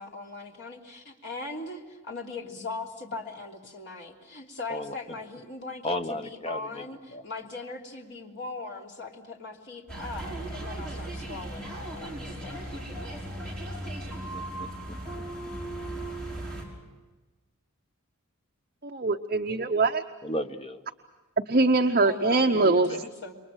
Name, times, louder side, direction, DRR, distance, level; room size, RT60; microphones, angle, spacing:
voice 1, 0.0-13.1 22.0-23.3, left 3 dB, 55° left, 0 dB, 3.2 m, -40 dB
voice 2, 5.8-6.9 7.1-7.2 14.3-15.2 20.2-20.8 22.5-23.1, left 1 dB, 25° left, 8 dB, 1.0 m, -35 dB
sound 1, 9.9-16.6, right 1 dB, 5° left, 5.8 m, -37 dB
voice 3, 18.8-20.0 21.5-22.9, right 3 dB, 45° right, 4 dB, 0.8 m, -23 dB
28.5 x 23.0 x 6.4 m, 1.2 s
head